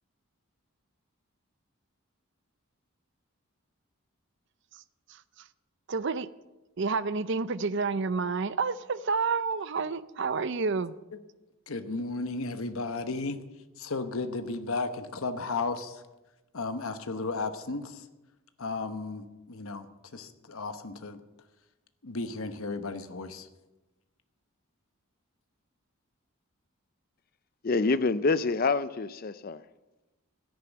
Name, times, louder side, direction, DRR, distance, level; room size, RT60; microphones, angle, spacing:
voice 1, 5.9-6.3 6.8-10.9, right 4 dB, 55° right, 0.5 m, -29 dB
voice 2, 11.7-13.4 13.8-16.0 16.5-18.0 18.6-19.9 20.1-21.2 22.0-23.5, left 3 dB, 75° left, 1.0 m, -34 dB
voice 3, 27.6-29.6, left 3 dB, 40° left, 0.5 m, -26 dB
13.5 x 10.5 x 7.2 m
head